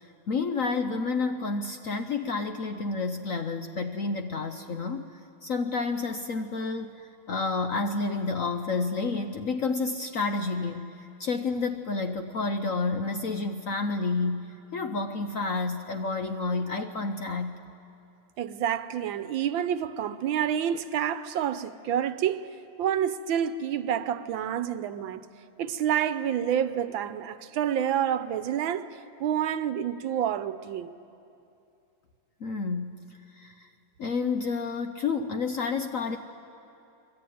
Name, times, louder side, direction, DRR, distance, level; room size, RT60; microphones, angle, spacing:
voice 1, 0.3-5.1 5.4-17.6 32.4-33.0 33.4-33.7 34.0-36.2, left 4 dB, 55° left, 0.9 m, -30 dB
voice 2, 18.4-22.5 22.8-25.3 25.6-28.9 29.2-30.9, right 9 dB, 75° right, 1.5 m, -28 dB
24.5 x 21.5 x 9.3 m
omnidirectional pair, 2.2 m